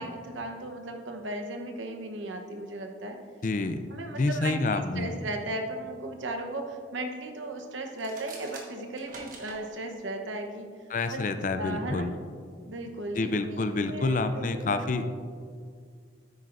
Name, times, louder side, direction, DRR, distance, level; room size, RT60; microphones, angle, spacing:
voice 1, 0.0-3.2 3.9-10.7 11.1-11.3 11.6-12.1 12.7-14.9, right 1 dB, 80° right, 4 dB, 0.9 m, -36 dB
voice 2, 3.4-3.8 4.2-5.1 10.9-12.1 13.1-15.1, left 3 dB, 40° left, 9 dB, 0.4 m, -28 dB
sound 1, 7.9-9.6, right 3 dB, 45° right, 1.3 m, -45 dB
9.7 x 8.8 x 2.5 m, 2.1 s
head